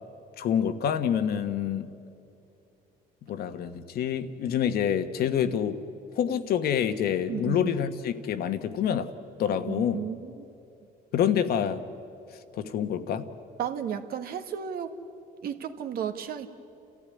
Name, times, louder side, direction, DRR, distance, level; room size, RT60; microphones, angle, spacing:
voice 1, 0.4-1.9 3.3-5.8 6.1-9.1 9.4-10.1 11.1-11.8 12.5-13.3, left 9 dB, 65° left, 9 dB, 1.3 m, -27 dB
voice 2, 7.3-7.7 9.7-10.4 13.6-15.0 15.4-16.5, right 8 dB, 65° right, 8 dB, 1.5 m, -33 dB
29.5 x 14.0 x 9.8 m, 2.7 s
cardioid pair, 110°, 17 cm